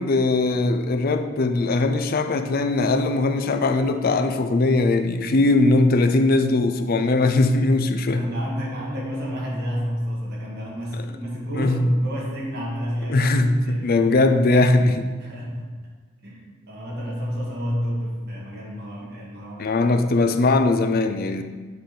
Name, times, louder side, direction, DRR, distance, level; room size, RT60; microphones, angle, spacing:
voice 1, 0.0-8.2 11.6-11.9 13.1-15.1 19.6-21.4, left 2 dB, 45° left, 7 dB, 0.4 m, -20 dB
voice 2, 8.1-13.4 13.6-14.1 15.2-15.7 16.2-19.8, equal, 50° right, -4 dB, 1.7 m, -30 dB
7.5 x 3.4 x 5.9 m, 1.4 s
head